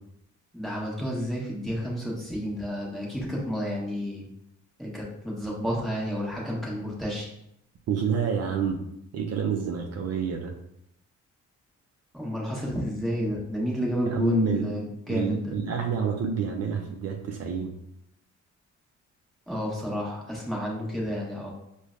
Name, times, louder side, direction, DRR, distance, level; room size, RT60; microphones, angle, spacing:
voice 1, 0.5-4.2 4.8-7.3 12.1-15.5 19.5-21.5, equal, ahead, -4 dB, 1.1 m, -30 dB
voice 2, 7.9-8.8 9.1-10.5 14.0-14.7 15.1-17.7, right 6 dB, 55° right, 3 dB, 0.5 m, -28 dB
4.9 x 2.2 x 2.5 m, 0.79 s
cardioid pair, 90°, 30 cm